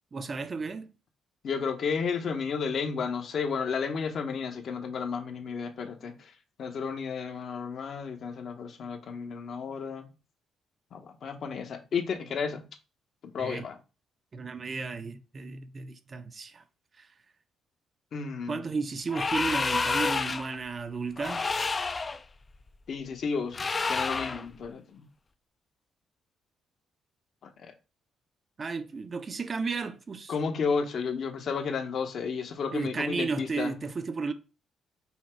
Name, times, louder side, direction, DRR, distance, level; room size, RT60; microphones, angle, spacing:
voice 1, 0.1-0.9 13.4-13.7 14.3-16.6 17.0-17.1 18.5-21.4 28.6-30.3 32.7-34.3, right 4 dB, 40° right, 0.5 m, -33 dB
voice 2, 1.4-6.3 6.6-10.1 10.9-12.6 13.3-13.8 18.1-18.6 22.9-25.0 27.6-27.7 30.3-33.7, left 5 dB, 60° left, 0.9 m, -32 dB
sound 1, 19.1-20.6 21.2-22.2 23.5-24.4, left 4 dB, 30° left, 0.4 m, -29 dB
5.5 x 2.1 x 4.4 m
cardioid pair, 90°, 0 cm